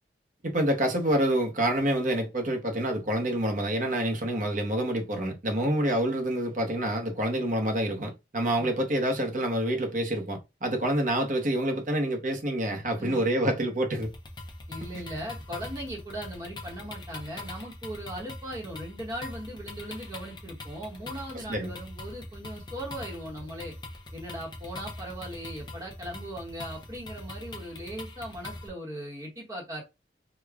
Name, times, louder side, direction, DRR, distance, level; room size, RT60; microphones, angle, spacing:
voice 1, 0.4-14.1 21.5-21.7, right 1 dB, 45° right, 0.8 m, -27 dB
sound 1, 14.0-28.7, left 2 dB, 25° left, 0.6 m, -42 dB
voice 2, 14.7-23.8 24.1-29.8, right 1 dB, 20° right, 1.0 m, -39 dB
4.9 x 2.2 x 2.3 m
head